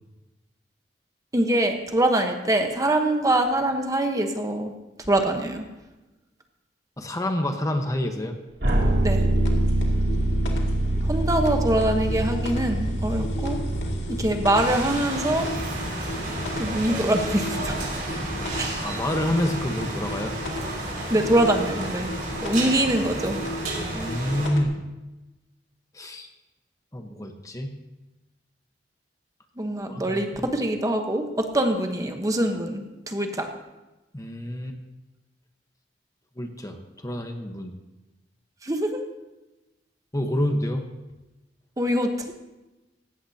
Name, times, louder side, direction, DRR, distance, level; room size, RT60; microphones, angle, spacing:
voice 1, 1.3-4.7 5.1-5.6 9.0-9.3 11.1-13.6 14.1-15.5 16.6-17.8 18.5-18.7 21.1-22.1 22.4-23.4 29.6-33.5 38.6-39.0 41.8-42.3, right 1 dB, 20° right, 4 dB, 1.1 m, -24 dB
voice 2, 7.0-8.3 18.8-20.3 23.9-24.8 25.9-26.3 26.9-27.7 29.9-30.2 34.1-34.8 36.4-37.7 40.1-40.8, left 1 dB, 20° left, 4 dB, 1.2 m, -28 dB
sound 1, 8.6-24.6, left 1 dB, 75° left, 2.5 m, -34 dB
sound 2, 8.6-15.5, right 1 dB, 70° right, 2.8 m, -25 dB
Hanover Lane Rain, 14.5-24.5, right 2 dB, 50° right, 5.4 m, -32 dB
18.0 x 16.0 x 2.9 m, 1.1 s
head